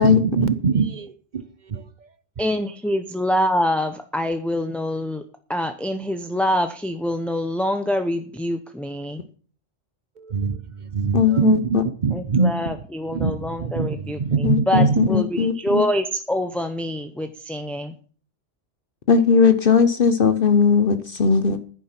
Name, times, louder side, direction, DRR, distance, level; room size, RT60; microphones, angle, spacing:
voice 1, 0.0-1.4 1.7-2.1 10.2-12.7 13.1-15.1, right 5 dB, 45° right, 0.9 m, -23 dB
voice 2, 2.4-5.2 5.5-9.2 12.1-17.9, equal, ahead, 0.6 m, -25 dB
voice 3, 11.1-11.8 14.4-15.9 19.1-21.6, left 6 dB, 50° left, 1.0 m, -18 dB
10.5 x 10.0 x 5.9 m
omnidirectional pair, 1.2 m